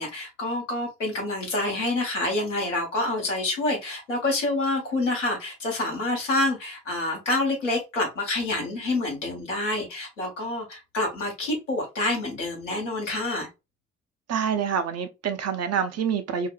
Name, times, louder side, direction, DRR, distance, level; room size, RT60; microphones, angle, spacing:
voice 1, 0.0-13.5, left 2 dB, 85° left, 1.1 m, -27 dB
voice 2, 14.3-16.5, right 7 dB, 45° right, 0.7 m, -26 dB
4.5 x 2.1 x 2.5 m
figure-of-eight pair, 45°, 37 cm